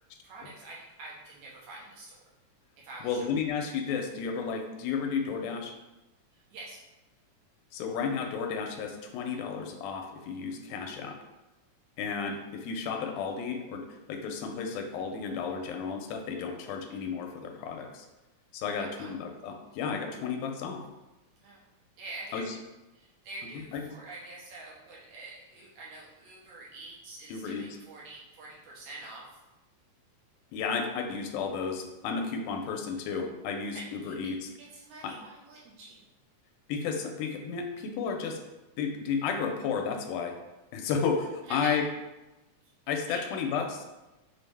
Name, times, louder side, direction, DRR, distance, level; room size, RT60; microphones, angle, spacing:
voice 1, 0.2-2.2 2.8-3.3 6.3-6.8 18.8-19.2 21.4-21.6 22.0-22.5 22.9-29.3 33.7-34.2 34.6-36.1 41.4-41.7 42.6-42.7 43.1-43.2, right 2 dB, 75° right, -5 dB, 2.1 m, -46 dB
voice 2, 3.0-5.7 7.7-11.2 12.0-18.1 18.5-20.8 22.3-22.6 23.7-23.8 27.3-27.7 30.5-34.5 35.0-35.1 36.7-38.4 38.8-40.4 40.7-41.8 42.9-43.9, left 5 dB, 85° left, 3 dB, 2.0 m, -32 dB
5.2 x 2.1 x 3.3 m, 1.0 s
omnidirectional pair, 3.5 m